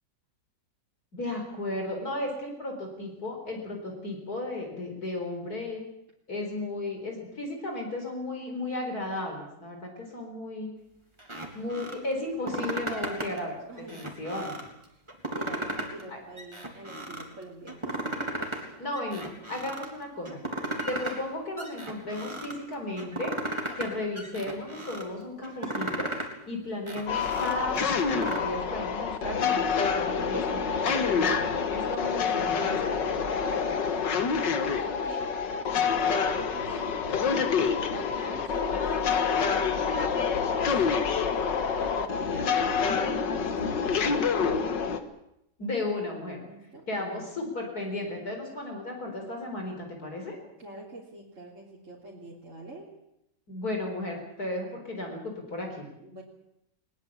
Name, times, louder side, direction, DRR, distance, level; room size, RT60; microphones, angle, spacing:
voice 1, 1.1-5.8 6.3-10.7 11.5-14.6 16.1-16.2 18.8-20.4 20.9-26.1 26.5-33.0 45.6-46.4 46.9-50.4 53.5-55.9, left 2 dB, 55° left, 2 dB, 4.7 m, -34 dB
sound 1, 11.2-12.0 12.3-13.4 13.8-14.7 15.1-16.0 16.4-17.3 17.7-18.6 18.9-19.9 20.2-21.2 21.6-22.5 23.0-23.9 24.1-25.0 25.4-26.3 26.7-28.4, right 1 dB, 15° right, 3.5 m, -35 dB
voice 2, 13.7-14.4 14.9-15.0 15.3-18.9 32.1-32.9 33.4-35.6 36.0-37.4 37.7-40.8 41.5-44.3 46.4-47.3 50.6-53.0 54.7-54.9 56.0-56.2, right 2 dB, 40° right, -3 dB, 3.6 m, -45 dB
sound 2, 27.1-45.0, left 6 dB, 75° left, 2.2 m, -27 dB
21.0 x 20.0 x 8.6 m, 0.82 s
omnidirectional pair, 1.9 m